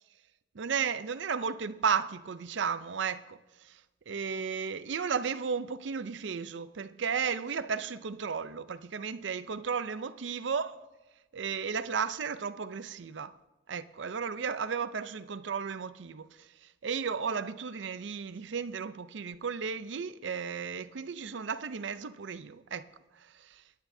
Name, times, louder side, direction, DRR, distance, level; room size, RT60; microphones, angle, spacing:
voice 1, 0.5-3.8 4.1-10.8 11.3-13.3 13.7-22.9 23.2-23.6, right 6 dB, 80° right, 0.5 m, -34 dB
25.5 x 10.0 x 2.7 m
head